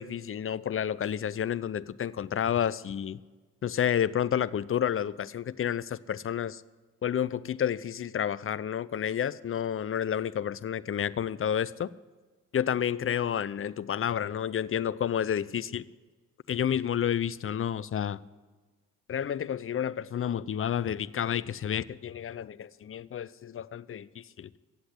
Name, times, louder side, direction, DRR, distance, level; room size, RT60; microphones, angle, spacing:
voice 1, 0.0-3.2 3.6-6.6 7.0-11.9 12.5-15.8 16.5-18.2 19.1-24.5, left 9 dB, 30° left, 18 dB, 0.6 m, -30 dB
16.0 x 8.0 x 8.4 m, 1.3 s
hypercardioid pair, 40°, 42 cm